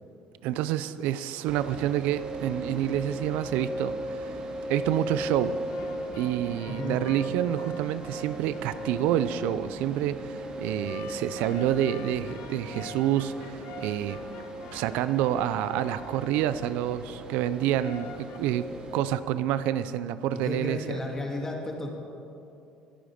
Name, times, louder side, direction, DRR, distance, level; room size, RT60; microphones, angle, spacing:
voice 1, 0.4-4.4 4.7-5.6 6.2-14.2 14.7-21.0, right 11 dB, 85° right, 14 dB, 0.5 m, -28 dB
sound 1, 1.5-19.1, right 1 dB, 40° right, 2.1 m, -37 dB
sound 2, 3.3-4.5 5.1-10.1 10.8-17.0 17.8-18.4, left 7 dB, 85° left, 1.4 m, -48 dB
voice 2, 6.6-7.0 20.3-21.9, left 2 dB, 20° left, 0 dB, 2.8 m, -33 dB
22.0 x 9.2 x 5.1 m, 2.7 s
cardioid pair, 105°, 3 cm